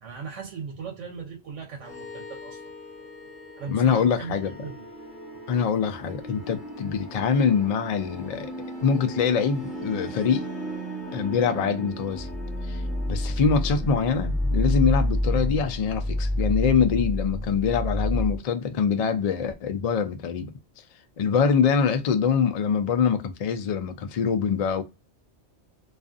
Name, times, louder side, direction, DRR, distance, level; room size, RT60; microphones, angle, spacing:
voice 1, 0.0-2.6 3.6-4.9, right 5 dB, 85° right, 1.0 m, -38 dB
sound 1, 1.8-18.4, left 1 dB, ahead, 0.9 m, -31 dB
voice 2, 3.7-4.5 5.5-8.5 8.8-10.5 11.1-12.3 12.6-12.8 13.1-20.5 21.2-24.8, left 6 dB, 85° left, 0.3 m, -24 dB
2.4 x 2.4 x 2.4 m
omnidirectional pair, 1.2 m